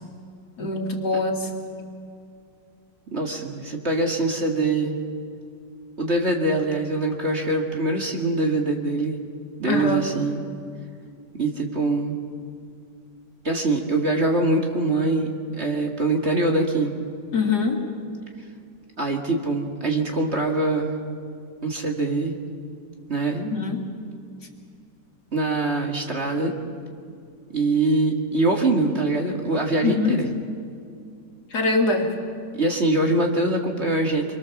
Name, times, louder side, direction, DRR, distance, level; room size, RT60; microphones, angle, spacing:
voice 1, 0.6-1.5 9.6-10.1 17.3-17.8 23.5-23.9 29.8-30.2 31.5-32.1, left 3 dB, 60° left, 2 dB, 2.9 m, -23 dB
voice 2, 3.1-5.0 6.0-9.2 9.6-10.4 11.4-12.2 13.4-16.9 19.0-21.0 21.6-22.4 23.1-23.5 25.3-26.5 27.5-30.3 32.5-34.4, right 2 dB, 35° right, 1 dB, 2.4 m, -23 dB
26.0 x 23.0 x 7.3 m, 2.4 s
omnidirectional pair, 1.9 m